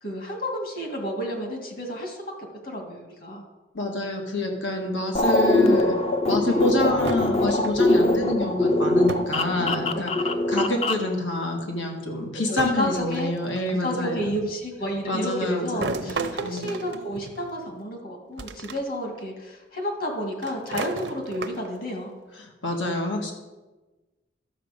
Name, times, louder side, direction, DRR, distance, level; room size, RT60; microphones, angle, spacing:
voice 1, 0.0-3.4 4.8-4.9 6.4-6.6 9.9-10.4 12.5-13.4 13.8-22.1, equal, 50° left, 2 dB, 2.2 m, -31 dB
voice 2, 3.7-6.0 6.3-10.1 10.5-14.2 15.1-16.1 16.4-16.7 22.3-23.3, left 1 dB, 90° left, 1 dB, 1.7 m, -27 dB
sound 1, 5.1-11.1, left 2 dB, 30° left, 0.5 m, -22 dB
sound 2, 7.1-8.0 9.1-9.4 9.7-10.3 11.4-11.5 12.6-13.9 15.8-17.7 18.4-18.8 19.2-19.3 20.4-21.9, right 4 dB, 70° right, 0.6 m, -34 dB
12.5 x 6.8 x 5.2 m, 1.2 s
head